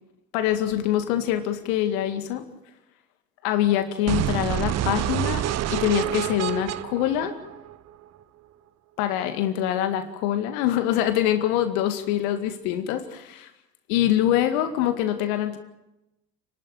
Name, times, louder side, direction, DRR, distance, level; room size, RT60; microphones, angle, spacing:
voice 1, 0.3-2.4 3.4-5.4 5.7-7.3 9.0-13.5 13.9-15.6, left 11 dB, 55° left, 7 dB, 2.1 m, -24 dB
sound 1, 4.1-8.0, right 12 dB, 30° right, 0.8 m, -27 dB
30.0 x 12.5 x 9.3 m, 0.95 s
figure-of-eight pair, 75°, 50 cm